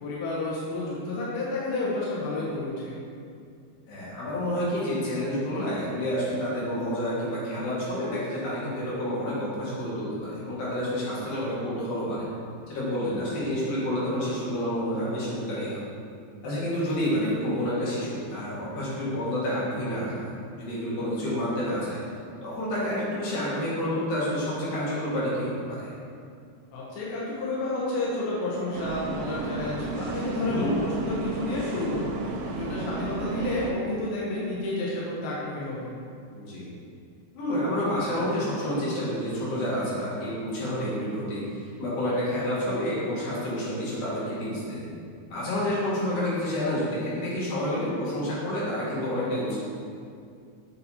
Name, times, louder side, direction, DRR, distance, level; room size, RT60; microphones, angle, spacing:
voice 1, 0.0-2.9 26.7-35.9, left 2 dB, 80° left, -7 dB, 2.2 m, -31 dB
voice 2, 3.9-12.2 12.7-15.8 16.4-22.0 22.4-25.9 30.4-30.7 36.3-36.7 37.3-41.4 41.8-44.8 45.3-49.6, equal, 60° left, -9 dB, 3.0 m, -29 dB
sound 1, 28.7-33.7, right 3 dB, 85° right, 2.6 m, -33 dB
6.8 x 5.7 x 2.8 m, 2.4 s
omnidirectional pair, 5.2 m